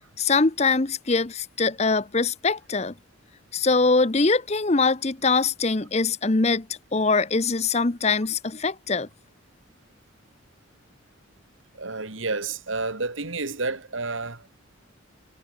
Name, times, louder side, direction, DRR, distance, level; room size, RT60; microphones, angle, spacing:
voice 1, 0.2-2.9 3.5-6.7 6.9-9.1, left 3 dB, 35° left, 0.8 m, -23 dB
voice 2, 11.8-14.4, right 3 dB, 80° right, 2.7 m, -30 dB
head